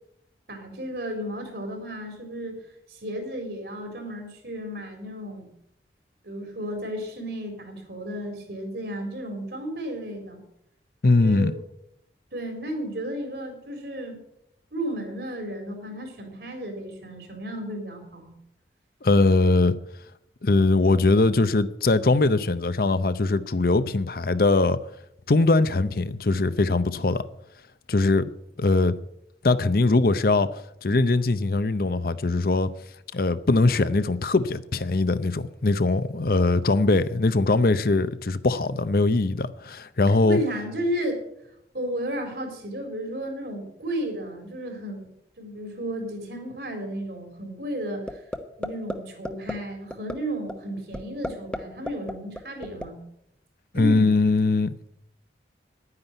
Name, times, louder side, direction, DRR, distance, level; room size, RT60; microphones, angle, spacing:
voice 1, 0.5-2.5 2.9-5.5 6.2-10.4 11.2-11.5 12.3-14.2 14.7-18.3 40.2-41.2 41.7-45.1 45.4-48.2 48.6-53.0 53.7-54.2, equal, 65° right, 4.0 m, -33 dB
voice 2, 11.0-11.5 19.0-19.8 20.4-24.8 25.3-27.3 27.9-28.3 28.6-29.0 29.4-32.7 33.1-40.4 53.7-54.8, left 3 dB, 55° left, 0.7 m, -21 dB
sound 1, 48.1-48.4 48.6-48.9 49.2-49.5 49.9-50.1 50.5-50.6 50.9-51.6 51.9-52.8, equal, 5° left, 0.9 m, -30 dB
11.0 x 9.7 x 8.0 m
head